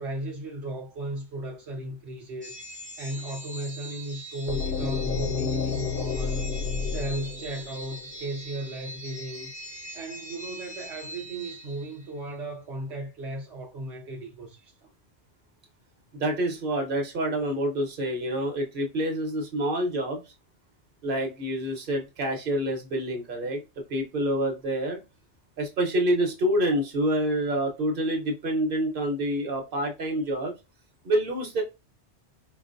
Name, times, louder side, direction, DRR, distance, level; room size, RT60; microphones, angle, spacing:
voice 1, 0.0-2.6 3.0-6.5 6.8-9.5 9.9-14.9, right 1 dB, 75° right, 1.0 m, -36 dB
sound 1, 2.4-12.2, equal, 10° right, 0.4 m, -42 dB
sound 2, 4.5-8.4, left 5 dB, 65° left, 0.7 m, -30 dB
voice 2, 16.1-20.2 21.0-23.6 23.9-25.0 25.6-30.5 31.0-31.6, right 1 dB, 50° right, 1.1 m, -27 dB
4.4 x 2.6 x 2.5 m
omnidirectional pair, 1.2 m